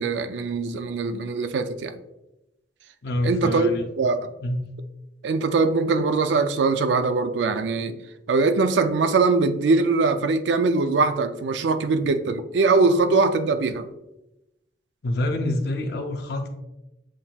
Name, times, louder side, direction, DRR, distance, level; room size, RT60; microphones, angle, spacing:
voice 1, 0.0-1.9 3.2-3.7 4.0-4.3 5.2-8.0 8.3-13.9, right 3 dB, 75° right, 0.4 m, -22 dB
voice 2, 3.0-3.9 4.4-4.7 15.0-16.5, left 1 dB, 65° left, 0.6 m, -26 dB
7.3 x 2.7 x 2.3 m
head